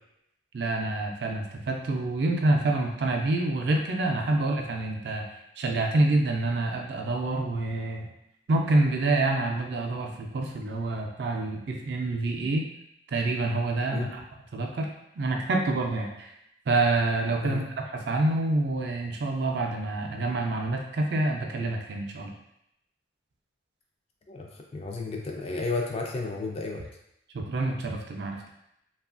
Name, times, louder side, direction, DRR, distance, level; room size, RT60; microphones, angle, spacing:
voice 1, 0.5-5.2 5.6-8.1 8.5-12.7 13.1-14.2 14.5-14.9 15.2-16.3 16.7-17.6 17.9-22.3 27.3-28.4, right 2 dB, 60° right, 2 dB, 0.4 m, -27 dB
voice 2, 24.3-26.8, left 3 dB, 30° left, 0 dB, 0.3 m, -32 dB
2.9 x 2.3 x 2.4 m, 0.81 s
head